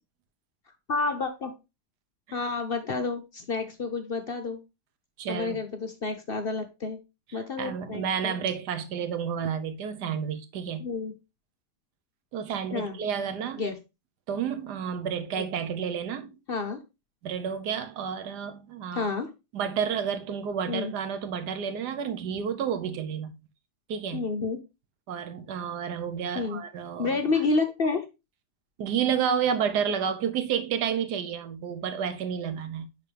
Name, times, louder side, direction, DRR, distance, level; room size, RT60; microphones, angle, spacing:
voice 1, 0.9-1.5 2.3-4.6 5.3-7.0 7.3-8.3 10.8-11.1 12.7-13.0 13.6-13.8 15.4-15.5 16.5-16.8 18.9-19.3 20.7-20.9 24.1-24.6 26.3-26.6 27.0-28.0, left 4 dB, 50° left, 0.8 m, -29 dB
voice 2, 5.2-5.6 7.3-10.8 12.3-13.7 14.3-16.3 17.2-19.1 19.5-23.3 23.9-24.3 25.1-27.2 28.8-32.9, right 7 dB, 90° right, 1.4 m, -30 dB
10.0 x 3.9 x 3.3 m
omnidirectional pair, 1.7 m